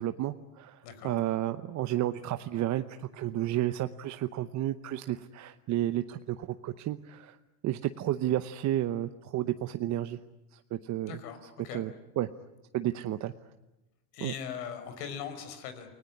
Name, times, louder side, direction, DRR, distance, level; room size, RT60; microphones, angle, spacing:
voice 1, 0.0-7.4 7.6-10.2 10.5-11.1 11.7-12.3 12.7-13.3 14.2-14.3, right 13 dB, 40° right, 9 dB, 0.9 m, -32 dB
voice 2, 0.8-1.2 11.1-11.8 14.1-16.0, left 7 dB, 80° left, 10 dB, 5.0 m, -40 dB
29.0 x 19.5 x 9.8 m, 0.98 s
supercardioid pair, 125°, 46 cm